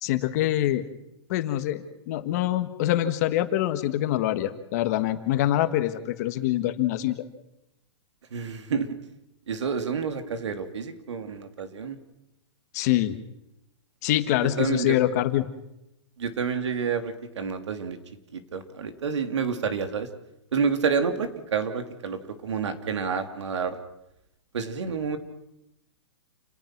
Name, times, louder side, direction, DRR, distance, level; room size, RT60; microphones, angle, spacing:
voice 1, 0.0-0.8 1.3-7.2 12.7-13.2 14.0-15.5, left 13 dB, 35° left, 10 dB, 1.6 m, -25 dB
voice 2, 8.3-9.0 9.5-12.0 14.6-15.0 16.2-18.0 18.3-20.1 20.5-23.8 24.5-25.2, right 6 dB, 90° right, 7 dB, 3.1 m, -29 dB
29.0 x 19.0 x 6.1 m, 0.86 s
hypercardioid pair, 165°, 14 cm